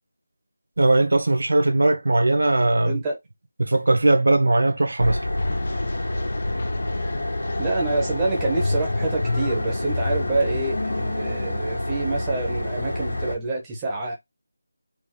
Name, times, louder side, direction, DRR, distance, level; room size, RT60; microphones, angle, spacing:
voice 1, 0.8-3.0 3.6-5.2, right 2 dB, 70° right, 1.1 m, -19 dB
voice 2, 2.8-3.2 7.6-14.1, right 3 dB, 10° right, 1.0 m, -27 dB
sound 1, 5.0-13.3, left 1 dB, 80° left, 1.9 m, -28 dB
sound 2, 5.4-11.6, left 3 dB, 35° left, 0.4 m, -31 dB
4.4 x 2.7 x 3.7 m
figure-of-eight pair, 175°, 0 cm